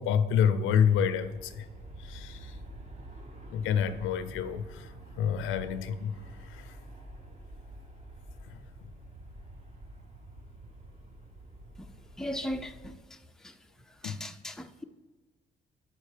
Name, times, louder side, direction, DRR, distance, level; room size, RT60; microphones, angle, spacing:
voice 1, 0.0-1.6 2.0-2.5 3.5-4.9 5.2-6.2 6.5-6.6 14.0-14.2, left 8 dB, 90° left, 0.5 m, -28 dB
Aircraft, 0.7-12.9, right 1 dB, 35° right, 1.2 m, -48 dB
voice 2, 12.2-13.6 14.0-14.8, equal, 5° left, 0.4 m, -38 dB
5.4 x 4.4 x 4.9 m
cardioid pair, 90°, 20 cm